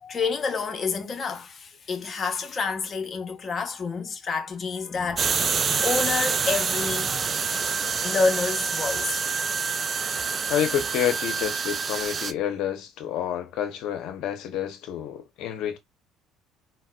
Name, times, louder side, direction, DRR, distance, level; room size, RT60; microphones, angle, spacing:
voice 1, 0.0-7.3 8.0-9.3, left 4 dB, 40° left, 0.8 m, -29 dB
sound 1, 5.2-12.3, right 5 dB, 35° right, 0.3 m, -27 dB
voice 2, 10.5-15.8, left 10 dB, 70° left, 0.7 m, -29 dB
4.0 x 2.1 x 2.2 m
supercardioid pair, 90°, 0 cm